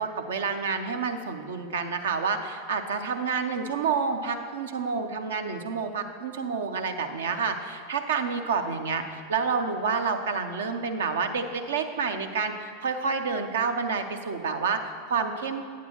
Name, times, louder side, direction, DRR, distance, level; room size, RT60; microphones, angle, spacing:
voice 1, 0.0-15.6, right 5 dB, 70° right, 7 dB, 0.6 m, -29 dB
9.0 x 8.4 x 3.0 m, 2.3 s
figure-of-eight pair, 85°, 0 cm